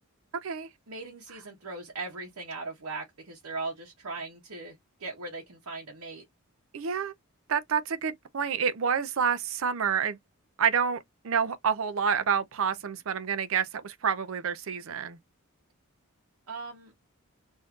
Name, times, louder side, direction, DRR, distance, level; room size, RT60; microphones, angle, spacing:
voice 1, 0.9-6.2 16.5-16.9, right 3 dB, 85° right, 0.9 m, -39 dB
voice 2, 6.7-7.1 7.5-10.2 10.6-15.2, right 7 dB, 65° right, 0.5 m, -28 dB
3.5 x 2.7 x 2.3 m
head